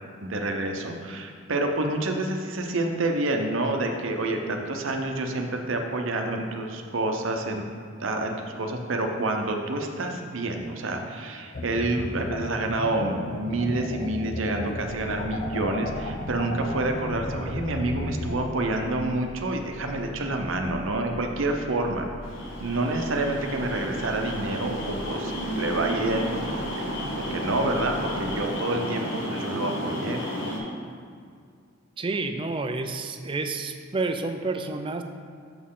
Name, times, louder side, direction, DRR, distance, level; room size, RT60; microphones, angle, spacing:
voice 1, 0.2-7.6 8.0-22.1 22.6-30.6, right 2 dB, 75° right, 3 dB, 0.7 m, -28 dB
sound 1, 11.5-18.4, left 2 dB, 45° left, 0.6 m, -34 dB
sound 2, 14.7-28.4, equal, 10° left, 1.3 m, -43 dB
sound 3, 22.2-30.6, equal, 70° left, 1.5 m, -32 dB
voice 2, 32.0-35.0, right 3 dB, 25° right, 7 dB, 0.4 m, -29 dB
6.9 x 6.4 x 3.8 m, 2.2 s
head